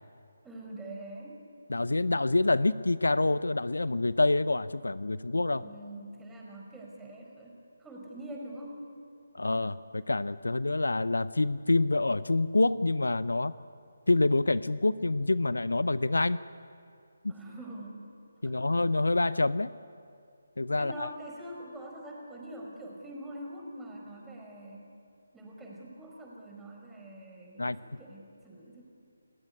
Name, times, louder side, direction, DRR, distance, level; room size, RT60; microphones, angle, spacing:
voice 1, 0.4-1.4 5.5-8.8 17.3-18.0 18.4-18.8 20.8-24.9 25.3-28.8, right 1 dB, 5° right, -2 dB, 4.8 m, -44 dB
voice 2, 1.7-5.7 9.3-13.5 14.1-16.4 17.2-17.3 18.4-19.7 20.6-21.1 27.6-27.8, left 2 dB, 80° left, 17 dB, 0.7 m, -27 dB
29.0 x 15.0 x 9.9 m, 2.4 s
figure-of-eight pair, 155°, 0 cm